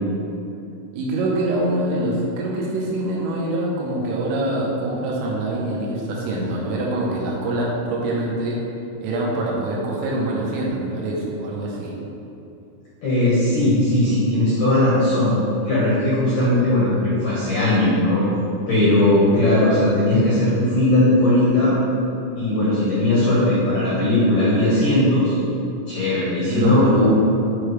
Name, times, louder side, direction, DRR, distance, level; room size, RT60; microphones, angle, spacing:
voice 1, 0.9-8.6 9.0-12.0 26.5-27.1, right 1 dB, 80° right, -4 dB, 3.7 m, -24 dB
voice 2, 13.0-15.4 15.7-18.2 18.7-21.8 22.4-25.4 25.9-27.1, left 1 dB, 65° left, -9 dB, 2.0 m, -18 dB
11.0 x 4.8 x 3.4 m, 2.8 s
omnidirectional pair, 5.9 m